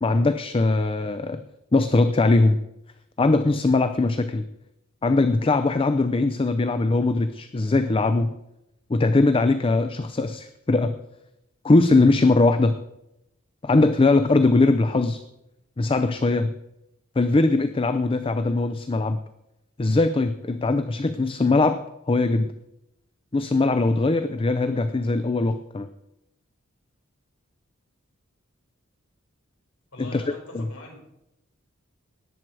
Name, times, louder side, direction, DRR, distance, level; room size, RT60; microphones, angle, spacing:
voice 1, 0.0-1.4 1.7-2.6 3.2-4.4 5.0-8.3 8.9-11.0 11.6-12.8 13.6-15.2 15.8-16.5 17.2-19.2 19.8-22.5 23.3-25.9 30.0-30.2 30.5-30.7, left 3 dB, 25° left, 11 dB, 0.5 m, -21 dB
voice 2, 29.9-31.0, left 2 dB, 90° left, 0 dB, 5.2 m, -42 dB
18.5 x 7.6 x 4.7 m, 0.87 s
head